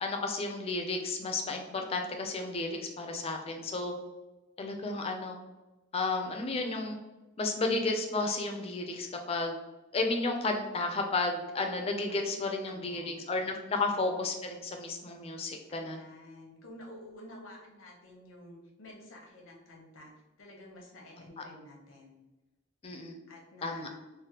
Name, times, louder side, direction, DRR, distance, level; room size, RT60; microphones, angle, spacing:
voice 1, 0.0-3.9 4.6-5.4 5.9-7.0 7.4-9.6 9.9-16.0 21.4-21.5 22.8-23.2 23.6-23.9, left 3 dB, 30° left, 4 dB, 0.4 m, -32 dB
voice 2, 12.2-13.2 13.7-14.2 15.7-20.1 20.4-22.2 23.3-23.9, left 1 dB, 80° left, 0 dB, 0.8 m, -51 dB
3.3 x 2.1 x 2.8 m, 1.1 s
head